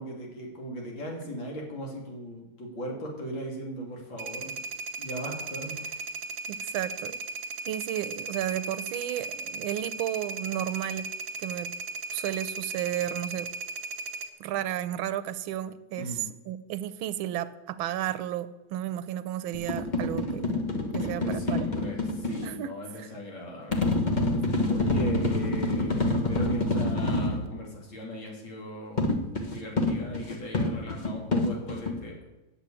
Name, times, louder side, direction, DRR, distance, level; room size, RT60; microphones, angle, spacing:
voice 1, 0.0-4.6 5.0-6.0 16.0-16.3 21.0-24.0 24.7-29.2 29.5-32.2, equal, 70° left, -1 dB, 3.2 m, -38 dB
sound 1, 4.2-14.3, right 3 dB, 55° right, 1.5 m, -36 dB
voice 2, 6.5-7.2 7.7-11.1 11.4-11.7 12.1-13.5 14.4-20.6 20.9-21.9 22.4-23.1 27.0-27.1, right 12 dB, 90° right, 15 dB, 1.5 m, -33 dB
sound 2, 19.5-22.4 23.7-27.4 29.0-32.0, left 2 dB, 30° left, 1.0 m, -27 dB
8.9 x 6.9 x 8.4 m, 1.0 s
omnidirectional pair, 2.2 m